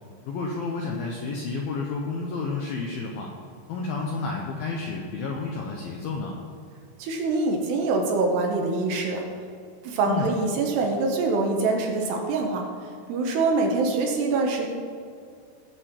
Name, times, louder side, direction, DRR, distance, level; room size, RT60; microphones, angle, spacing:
voice 1, 0.2-3.3 3.7-6.4 10.1-10.3, left 4 dB, 80° left, 0 dB, 2.1 m, -30 dB
voice 2, 7.0-9.2 9.8-12.6 13.1-14.7, right 3 dB, 70° right, 2 dB, 2.8 m, -24 dB
18.0 x 6.8 x 4.4 m, 2.3 s
omnidirectional pair, 5.5 m